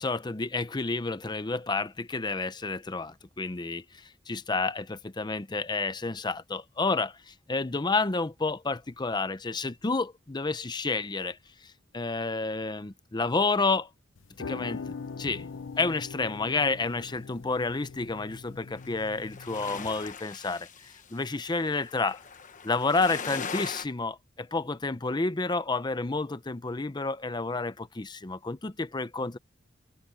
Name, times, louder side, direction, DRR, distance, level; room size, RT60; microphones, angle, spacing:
voice 1, 0.0-11.4 11.9-13.9 14.4-15.5 15.8-22.2 22.6-29.4, left 3 dB, 25° left, 0.6 m, -30 dB
sound 1, 14.2-20.1, left 5 dB, 75° left, 0.6 m, -42 dB
sound 2, 18.8-23.9, left 6 dB, 40° left, 1.1 m, -40 dB
head